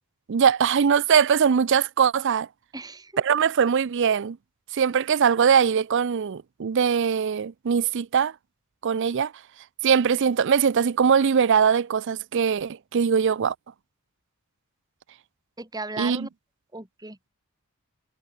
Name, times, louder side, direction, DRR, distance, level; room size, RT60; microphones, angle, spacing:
voice 1, 0.3-2.5 3.2-4.4 4.7-8.3 8.8-9.3 9.8-13.5 16.0-16.3, right 7 dB, 55° right, 0.4 m, -21 dB
voice 2, 2.7-3.2 15.6-16.3 16.7-17.3, right 2 dB, 15° right, 2.5 m, -36 dB
head